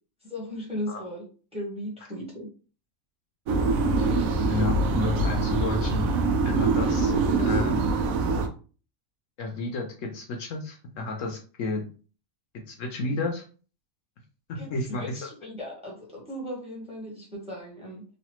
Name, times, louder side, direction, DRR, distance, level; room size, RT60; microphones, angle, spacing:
voice 1, 0.2-1.2 1.5-2.5 14.5-18.0, equal, 5° right, -2 dB, 0.9 m, -37 dB
sound 1, 3.5-8.5, right 3 dB, 85° right, 1.0 m, -24 dB
voice 2, 4.5-6.1 6.4-7.1 7.4-7.8 9.4-11.8 12.7-13.4 14.7-15.0, left 3 dB, 70° left, 3 dB, 1.0 m, -31 dB
3.2 x 2.4 x 2.9 m, 0.38 s
omnidirectional pair, 1.4 m